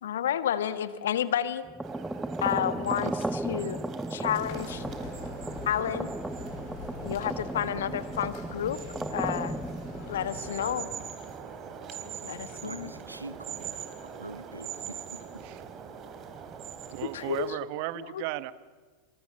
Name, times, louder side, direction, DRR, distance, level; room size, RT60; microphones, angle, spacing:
voice 1, 0.0-1.7 2.4-3.8 4.1-4.8 5.6-6.1 7.0-8.8 9.1-9.6 10.1-10.9 12.2-12.9 17.1-17.6 17.9-18.2, left 10 dB, 70° left, 13 dB, 1.4 m, -30 dB
sound 1, 1.6-11.4, right 1 dB, 5° right, 1.2 m, -36 dB
sound 2, 1.8-17.6, right 7 dB, 35° right, 3.9 m, -43 dB
sound 3, 4.2-10.8, left 8 dB, 50° left, 4.7 m, -45 dB
voice 2, 12.6-15.4, right 2 dB, 90° right, 15 dB, 1.2 m, -44 dB
voice 3, 16.9-18.5, right 17 dB, 55° right, 16 dB, 1.2 m, -35 dB
28.0 x 27.0 x 7.6 m, 1.5 s
figure-of-eight pair, 85°, 0 cm